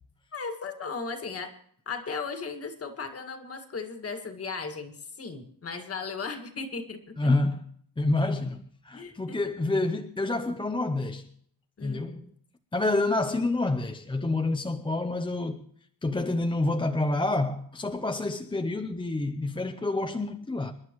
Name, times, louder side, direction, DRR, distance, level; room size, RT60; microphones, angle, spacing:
voice 1, 0.3-1.5 1.9-7.2 8.9-9.4 11.8-12.3, left 4 dB, 35° left, 2.0 m, -36 dB
voice 2, 7.2-7.6 8.0-11.2 11.8-12.2 12.7-15.6 16.0-20.7, left 2 dB, 10° left, 0.6 m, -28 dB
28.0 x 11.5 x 3.1 m
wide cardioid pair, 175°, 42 cm